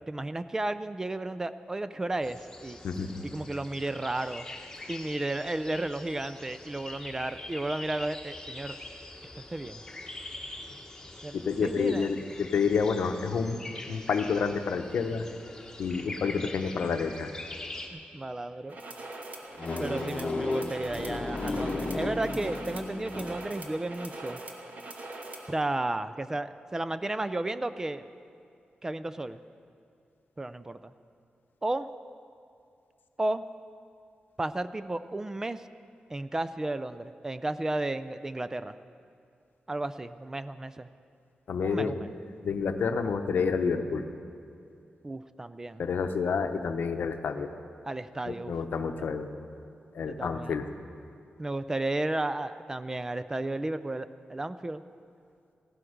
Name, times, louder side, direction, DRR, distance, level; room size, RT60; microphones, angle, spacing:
voice 1, 0.0-2.8 3.2-4.5 4.9-8.8 9.3-9.8 11.2-12.1 17.9-18.8 19.8-24.4 25.5-28.0 28.8-29.4 30.4-30.9 31.6-31.9 33.2-33.4 34.4-35.6 36.1-38.8 39.7-40.9 41.6-42.1 45.0-45.8 47.8-48.5 50.1-50.5 51.4-54.8, right 2 dB, 15° right, 13 dB, 0.3 m, -33 dB
sound 1, 2.2-17.9, left 2 dB, 15° left, 1.2 m, -44 dB
voice 2, 2.8-3.2 11.3-13.6 13.9-15.3 15.8-17.3 41.5-41.9 42.4-44.1 45.8-47.5 48.3-49.3 49.9-50.7, left 5 dB, 90° left, 7 dB, 0.8 m, -29 dB
sound 2, 18.7-25.6, right 2 dB, 55° right, 1.2 m, -42 dB
sound 3, 19.6-23.6, left 2 dB, 35° left, 0.9 m, -33 dB
15.5 x 12.5 x 5.0 m, 2.5 s
wide cardioid pair, 180°, 3 cm